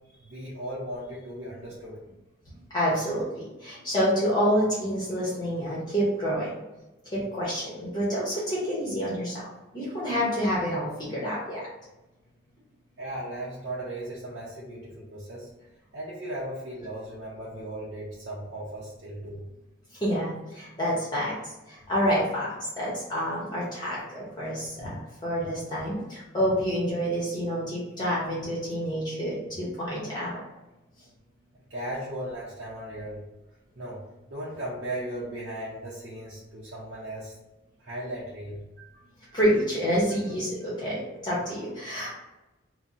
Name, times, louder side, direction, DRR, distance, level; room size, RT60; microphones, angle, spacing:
voice 1, 0.1-2.0 13.0-15.5 15.9-19.4 31.7-33.2 33.8-37.3 37.8-38.6, right 1 dB, 60° right, -7 dB, 0.6 m, -37 dB
voice 2, 2.7-6.5 7.1-9.4 9.7-11.7 20.0-21.4 21.7-30.4 39.3-42.1, equal, 20° left, -7 dB, 0.7 m, -28 dB
2.7 x 2.0 x 3.7 m, 1.0 s
head